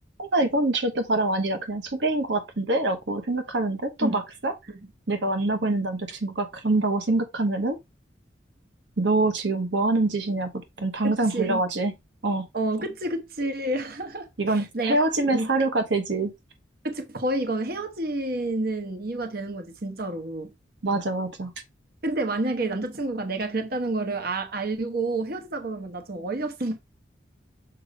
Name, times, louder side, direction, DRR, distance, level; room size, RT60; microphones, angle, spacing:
voice 1, 0.2-4.5 5.1-7.8 9.0-10.5 10.8-11.9 12.2-12.5 14.4-16.3 20.8-21.5, right 2 dB, 75° right, 1.1 m, -25 dB
voice 2, 11.0-11.6 12.5-15.0 15.3-15.5 16.8-20.5 22.0-26.8, right 2 dB, 55° right, 1.1 m, -29 dB
6.7 x 2.9 x 5.1 m
head